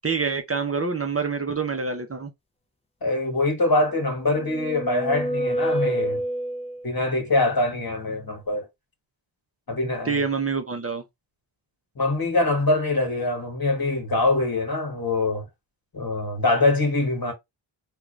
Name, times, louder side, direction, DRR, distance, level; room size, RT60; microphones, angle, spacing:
voice 1, 0.0-2.3 10.0-11.0, right 5 dB, 30° right, 0.6 m, -26 dB
voice 2, 3.0-6.2 6.8-8.6 9.7-10.2 12.0-15.4 15.9-17.3, left 2 dB, 50° left, 1.4 m, -24 dB
sound 1, 4.0-7.0, right 1 dB, 15° left, 0.6 m, -28 dB
3.7 x 2.4 x 3.2 m
wide cardioid pair, 85°, 45 cm